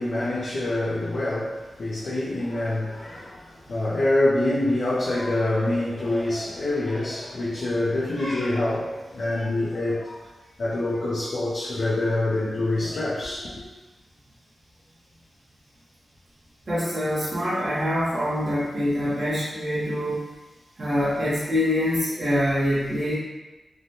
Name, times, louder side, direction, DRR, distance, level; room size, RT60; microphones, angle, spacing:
voice 1, 0.0-10.2 10.6-13.6, left 1 dB, 55° left, -8 dB, 0.5 m, -26 dB
voice 2, 16.7-20.2 20.8-23.1, equal, 35° right, -11 dB, 0.7 m, -25 dB
3.1 x 2.1 x 2.7 m, 1.1 s
wide cardioid pair, 180°, 0 cm